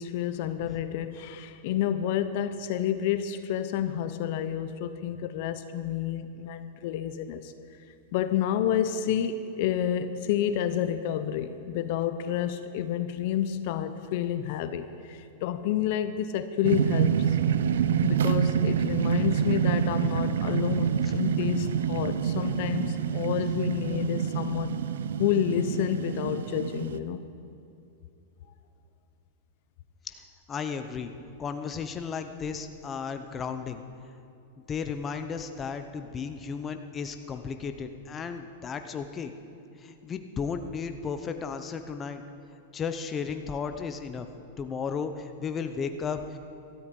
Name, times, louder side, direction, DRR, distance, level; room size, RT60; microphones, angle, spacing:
voice 1, 0.0-7.5 8.1-17.4 18.0-24.8 25.2-27.3, left 10 dB, 55° left, 11 dB, 0.8 m, -29 dB
sound 1, 16.6-27.0, right 8 dB, 85° right, 0.6 m, -27 dB
voice 2, 30.0-31.1 31.4-33.8 34.6-39.3 39.8-42.2 42.7-44.3 44.6-46.4, left 6 dB, 20° left, 7 dB, 0.8 m, -34 dB
17.0 x 13.0 x 5.4 m, 2.6 s
supercardioid pair, 145°, 0 cm